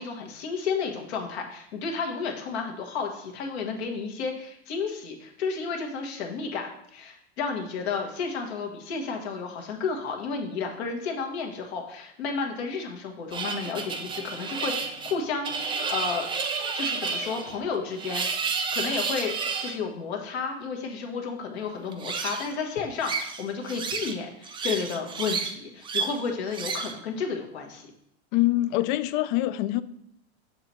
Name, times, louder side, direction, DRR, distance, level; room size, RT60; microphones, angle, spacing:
voice 1, 0.0-16.3 16.7-19.3 19.6-27.9, left 5 dB, 70° left, 2 dB, 1.4 m, -32 dB
sound 1, 13.3-19.8 21.9-22.5 23.0-24.2 24.4-25.5 25.8-26.2 26.5-27.0, right 5 dB, 15° right, 0.5 m, -31 dB
voice 2, 28.3-29.8, left 16 dB, 50° left, 15 dB, 0.4 m, -24 dB
7.0 x 3.1 x 5.4 m, 0.74 s
hypercardioid pair, 120°, 33 cm